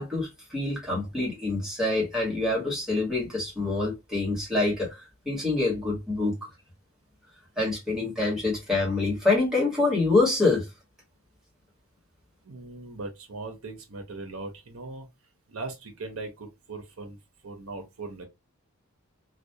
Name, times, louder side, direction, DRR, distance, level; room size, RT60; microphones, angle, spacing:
voice 1, 0.0-6.3 7.6-10.6, left 3 dB, ahead, 1.2 m, -26 dB
voice 2, 12.4-15.1 15.5-17.2 17.4-18.3, right 3 dB, 70° right, 0.7 m, -39 dB
2.3 x 2.2 x 2.7 m
head